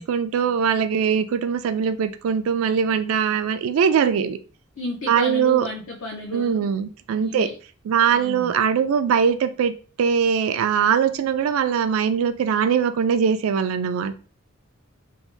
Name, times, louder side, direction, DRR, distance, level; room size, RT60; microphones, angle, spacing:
voice 1, 0.0-4.4 5.1-5.7 6.3-7.5 7.9-9.7 10.0-14.1, right 7 dB, 80° right, 0.3 m, -21 dB
voice 2, 4.8-6.7 7.2-7.6 8.1-8.6, left 2 dB, 65° left, 0.5 m, -32 dB
2.7 x 2.1 x 3.1 m
head